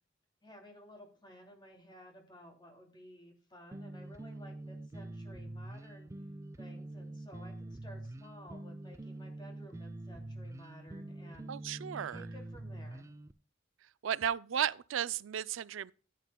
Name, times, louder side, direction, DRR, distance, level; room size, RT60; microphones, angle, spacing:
voice 1, 0.4-6.1 6.6-11.5 12.0-13.1, equal, 25° left, 2.8 m, -55 dB
sound 1, 3.7-13.3, right 1 dB, 15° right, 0.4 m, -45 dB
voice 2, 11.5-12.2 14.0-15.9, right 9 dB, 85° right, 0.4 m, -34 dB
16.5 x 9.1 x 2.2 m
head